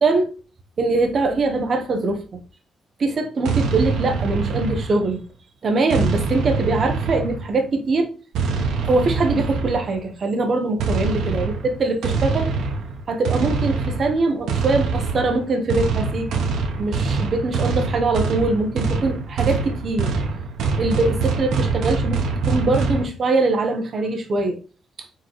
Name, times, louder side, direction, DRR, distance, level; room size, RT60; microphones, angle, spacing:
voice 1, 0.0-0.3 0.8-2.4 3.0-5.2 5.6-8.1 8.8-12.5 13.1-16.4 16.8-20.1 20.8-24.6, right 3 dB, 35° right, 0.8 m, -22 dB
sound 1, 3.4-5.2 5.9-7.6 8.3-10.0 10.8-23.1, right 4 dB, 80° right, 0.8 m, -24 dB
4.3 x 3.7 x 3.0 m
cardioid pair, 170°, 0 cm